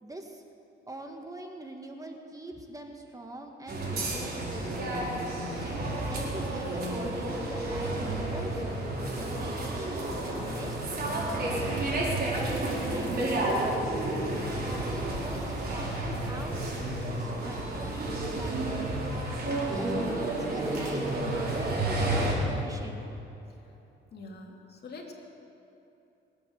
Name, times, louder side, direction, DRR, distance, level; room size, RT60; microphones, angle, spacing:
voice 1, 0.0-0.4 0.9-5.1 5.6-8.6 9.1-10.8 11.2-13.9 14.5-18.8 19.4-23.2, right 1 dB, 15° right, 3 dB, 1.7 m, -43 dB
sound 1, 3.7-22.3, right 1 dB, 50° right, 4.6 m, -31 dB
voice 2, 24.1-25.1, left 3 dB, 55° left, 0 dB, 2.7 m, -44 dB
23.5 x 8.6 x 7.1 m, 2.9 s
cardioid pair, 90°, 20 cm